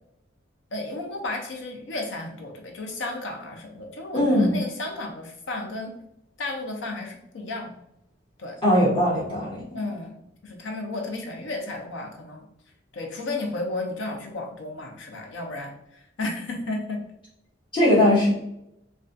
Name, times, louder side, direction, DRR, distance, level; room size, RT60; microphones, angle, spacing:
voice 1, 0.7-5.9 6.4-7.7 8.4-8.6 9.7-12.5 12.9-17.0, left 2 dB, 70° left, 2 dB, 0.5 m, -33 dB
voice 2, 4.1-4.6 8.6-9.8 17.7-18.3, left 1 dB, 25° left, -8 dB, 1.0 m, -20 dB
2.3 x 2.2 x 2.5 m, 0.79 s
head